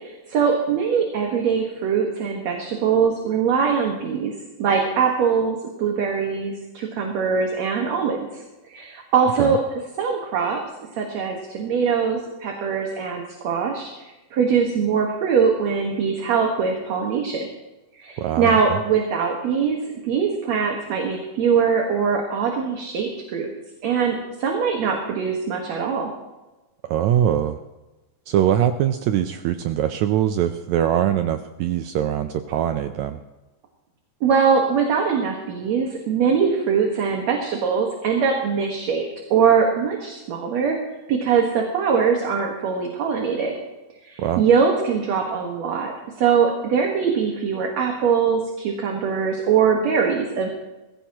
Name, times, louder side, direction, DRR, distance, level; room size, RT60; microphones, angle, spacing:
voice 1, 0.0-4.3 4.6-8.4 8.7-9.6 10.0-10.6 11.0-13.9 14.3-17.5 18.0-19.8 20.0-23.5 23.8-26.1 34.2-39.0 39.3-40.8 41.1-43.5 44.0-45.9 46.2-50.5, right 6 dB, 60° right, 1 dB, 2.5 m, -22 dB
voice 2, 18.2-18.8 26.8-27.6 28.3-33.2 44.2-44.4, right 10 dB, 85° right, 8 dB, 1.6 m, -22 dB
21.0 x 16.0 x 3.0 m, 1.1 s
omnidirectional pair, 3.9 m